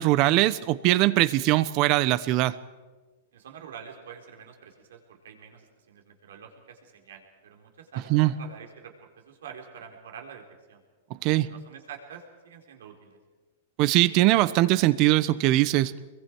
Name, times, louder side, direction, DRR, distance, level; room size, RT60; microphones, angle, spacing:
voice 1, 0.0-2.6 8.1-8.3 11.2-11.5 13.8-15.9, right 17 dB, 40° right, 17 dB, 0.9 m, -21 dB
voice 2, 3.3-10.8 11.3-13.2, right 7 dB, 80° right, 2 dB, 3.8 m, -46 dB
26.5 x 22.0 x 4.6 m, 1.3 s
hypercardioid pair, 140°, 0 cm